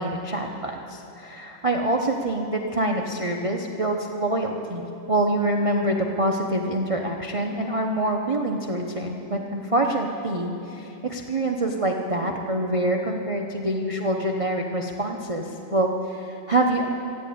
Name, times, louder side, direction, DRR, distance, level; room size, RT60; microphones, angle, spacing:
voice 1, 0.0-16.9, right 1 dB, 50° right, 1 dB, 0.4 m, -26 dB
14.5 x 10.5 x 8.5 m, 3.0 s
omnidirectional pair, 2.1 m